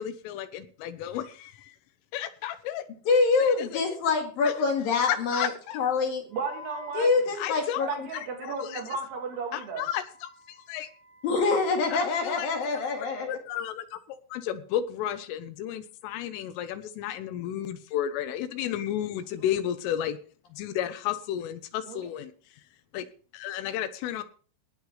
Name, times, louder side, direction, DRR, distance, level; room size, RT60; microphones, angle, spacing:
voice 1, 0.0-1.7 2.1-2.8 3.4-3.8 4.4-4.5 5.0-5.8 7.4-9.0 9.5-10.9 11.9-12.8 13.3-14.0 14.3-20.2 20.5-22.3 22.9-23.1 23.3-24.2, left 11 dB, 85° left, 11 dB, 3.6 m, -33 dB
voice 2, 3.1-6.2 6.9-8.1 11.2-13.3, left 4 dB, 55° left, 3 dB, 3.2 m, -25 dB
Wind instrument woodwind instrument, 6.3-12.4, left 5 dB, 5° left, 6.8 m, -51 dB
voice 3, 6.3-7.1 7.9-8.0 8.3-9.8 21.9-22.0, right 5 dB, 60° right, 3 dB, 4.0 m, -33 dB
19.5 x 10.5 x 3.3 m, 0.40 s
omnidirectional pair, 5.8 m